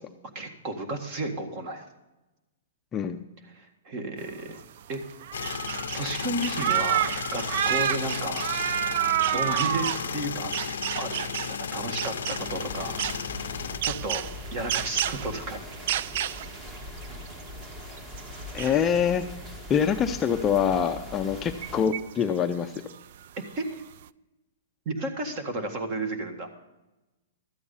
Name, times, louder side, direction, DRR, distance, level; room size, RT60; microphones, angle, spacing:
voice 1, 0.3-1.9 3.5-4.6 4.9-5.1 5.9-8.5 9.3-10.5 11.0-13.0 13.8-14.2 14.5-16.0 23.6-23.8 24.9-26.5, right 2 dB, 35° right, 6 dB, 1.8 m, -33 dB
sound 1, 4.3-4.4 4.6-4.7 4.9-11.6 11.9-13.3 13.8-15.4 15.7-17.6 18.0-19.0 19.2-19.3 19.9-20.0 20.6-20.7 21.5-22.3 22.7-23.2, right 11 dB, 55° right, 0.3 m, -30 dB
sound 2, 5.3-13.8, left 7 dB, 85° left, 0.6 m, -34 dB
sound 3, 12.3-21.9, left 1 dB, 20° right, 1.6 m, -41 dB
voice 2, 18.5-19.2 19.7-22.7, left 7 dB, 15° left, 6 dB, 0.5 m, -25 dB
13.0 x 8.5 x 5.5 m, 1.0 s
hypercardioid pair, 155°, 0 cm